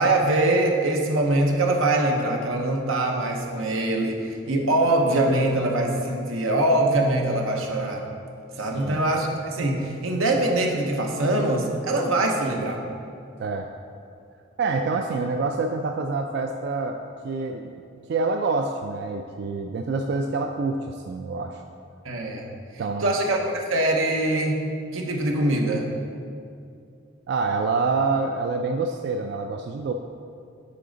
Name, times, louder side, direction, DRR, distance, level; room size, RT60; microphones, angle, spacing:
voice 1, 0.0-8.1 8.6-12.8 22.0-22.5 23.0-24.6 24.9-25.9, right 2 dB, 90° right, 2 dB, 0.9 m, -23 dB
voice 2, 8.6-9.0 13.4-13.7 14.6-17.0 17.2-17.7 18.1-21.6 22.8-23.1 27.3-29.9, right 3 dB, 55° right, 5 dB, 0.3 m, -26 dB
8.4 x 5.0 x 3.9 m, 2.5 s
head